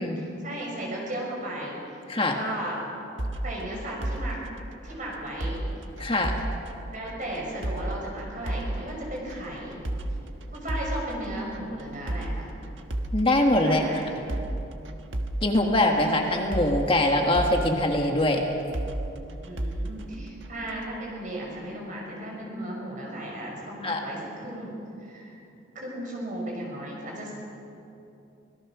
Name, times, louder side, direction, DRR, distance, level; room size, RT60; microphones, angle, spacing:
voice 1, 0.0-1.8 2.1-2.9 3.4-4.4 4.8-5.6 6.9-9.8 10.5-12.5 13.6-14.1 19.4-25.4 25.7-27.3, right 1 dB, 40° right, -2 dB, 6.0 m, -35 dB
sound 1, 3.2-20.9, right 1 dB, 70° right, 1.4 m, -34 dB
voice 2, 6.0-6.4 13.1-13.8 15.4-18.4 23.8-24.0, left 1 dB, 25° left, 2 dB, 1.6 m, -23 dB
25.5 x 17.5 x 6.1 m, 2.8 s
head